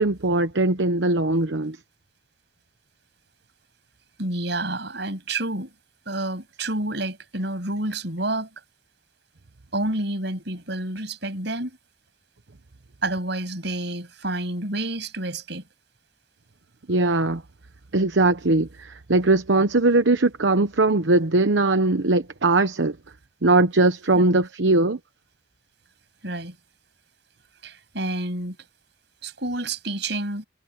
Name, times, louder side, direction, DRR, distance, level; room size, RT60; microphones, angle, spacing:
voice 1, 0.0-1.8 16.9-17.4 17.9-23.0 23.4-25.0, right 2 dB, 85° right, 1.0 m, -20 dB
voice 2, 4.2-5.7 6.1-8.5 9.7-11.8 13.0-15.6 24.2-24.3 26.2-26.5 27.6-28.6 29.2-30.4, right 2 dB, 65° right, 8.0 m, -29 dB
head